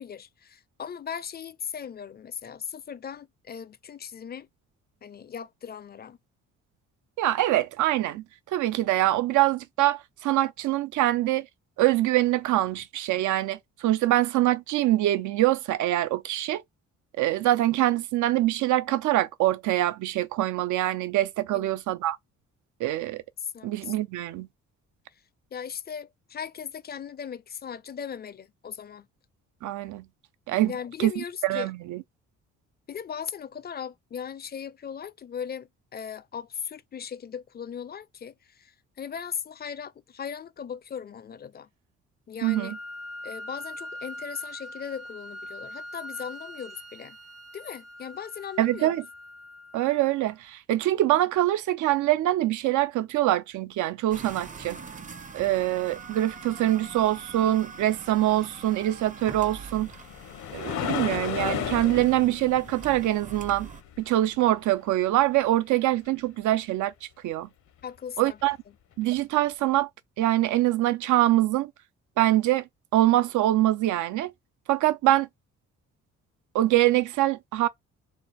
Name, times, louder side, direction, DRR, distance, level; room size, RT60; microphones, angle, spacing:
voice 1, 0.0-4.5 5.0-6.2 21.5-21.7 23.4-23.9 25.5-29.1 30.6-31.7 32.9-41.7 42.3-42.8 43.2-47.2 47.5-48.9 67.8-68.4 68.7-68.8, left 7 dB, 35° left, 0.5 m, -38 dB
voice 2, 7.2-8.2 8.5-11.4 11.8-16.6 17.2-22.2 22.8-23.2 23.6-24.5 29.6-30.0 30.5-30.7 31.0-32.0 42.4-42.8 48.6-49.0 49.7-54.8 55.3-59.9 60.5-63.7 64.0-66.9 67.2-67.5 68.2-68.6 69.0-69.9 70.2-71.7 72.2-72.6 72.9-74.3 74.7-75.3 76.5-77.7, right 15 dB, 75° right, 0.5 m, -24 dB
Wind instrument woodwind instrument, 42.4-50.4, left 1 dB, 55° right, 0.9 m, -42 dB
sound 1, 54.1-63.8, right 5 dB, 25° right, 0.6 m, -43 dB
sound 2, 59.2-64.5 68.4-68.5 69.1-69.2, left 9 dB, 70° left, 0.8 m, -34 dB
3.4 x 2.3 x 4.1 m
cardioid pair, 90°, 30 cm